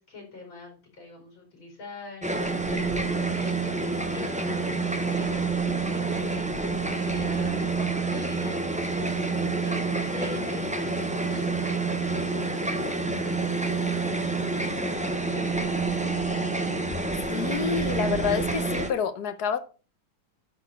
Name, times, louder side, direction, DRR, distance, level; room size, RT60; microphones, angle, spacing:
voice 1, 0.0-16.3, left 3 dB, 90° left, 5.7 m, -45 dB
sound 1, 2.2-18.9, right 3 dB, 5° right, 0.5 m, -28 dB
sound 2, 9.4-16.5, right 3 dB, 35° right, 2.8 m, -45 dB
voice 2, 17.3-19.6, left 7 dB, 60° left, 1.4 m, -28 dB
11.5 x 4.3 x 5.7 m
omnidirectional pair, 2.1 m